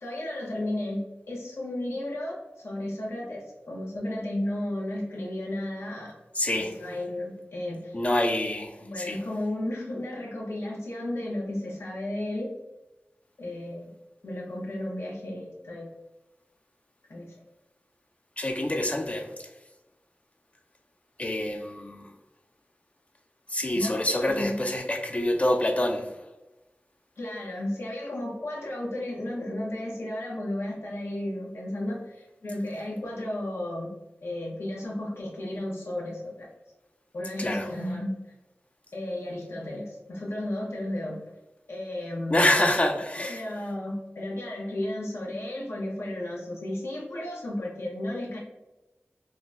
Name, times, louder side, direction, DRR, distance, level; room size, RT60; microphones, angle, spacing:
voice 1, 0.0-2.4 2.6-6.1 6.5-7.9 8.8-12.5 13.4-13.9 14.2-15.9 17.1-17.3 23.7-24.7 27.2-33.9 34.2-36.5 37.1-38.1 38.9-41.3 41.7-42.4 43.2-48.4, left 1 dB, 85° left, -3 dB, 0.8 m, -33 dB
voice 2, 6.4-6.7 7.9-9.2 18.4-19.3 21.2-22.1 23.5-26.0 37.4-37.7 42.3-43.4, left 1 dB, 30° left, 4 dB, 0.3 m, -26 dB
3.8 x 2.0 x 2.3 m, 1.0 s
wide cardioid pair, 55°, 4 cm